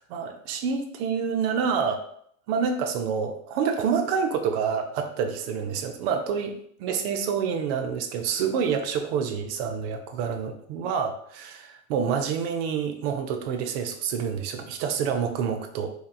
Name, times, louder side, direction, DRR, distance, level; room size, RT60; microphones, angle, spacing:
voice 1, 0.0-2.1 2.5-15.9, right 6 dB, 45° right, 6 dB, 0.5 m, -27 dB
2.8 x 2.3 x 2.2 m, 0.66 s
hypercardioid pair, 90°, 42 cm